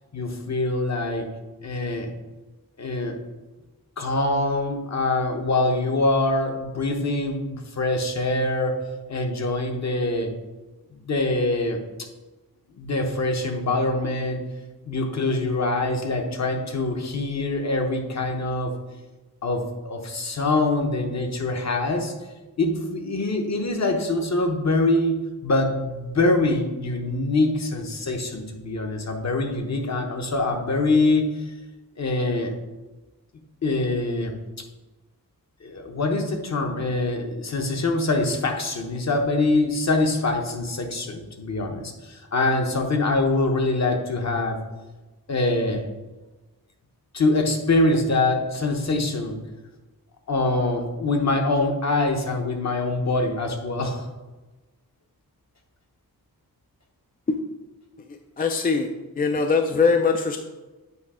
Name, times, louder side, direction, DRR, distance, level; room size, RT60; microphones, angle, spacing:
voice 1, 0.1-1.3 1.6-2.1 2.8-3.2 4.0-8.8 9.1-10.3 10.9-11.8 12.7-14.4 14.8-18.7 19.4-22.1 22.6-31.3 32.0-32.5 33.6-34.3 35.6-44.6 45.3-45.9 47.1-49.4 50.3-54.1, left 2 dB, 50° left, 3 dB, 1.0 m, -24 dB
voice 2, 58.1-58.9 59.2-60.4, left 4 dB, 25° left, 5 dB, 0.4 m, -22 dB
8.2 x 2.8 x 4.8 m, 1.2 s
wide cardioid pair, 110°, 36 cm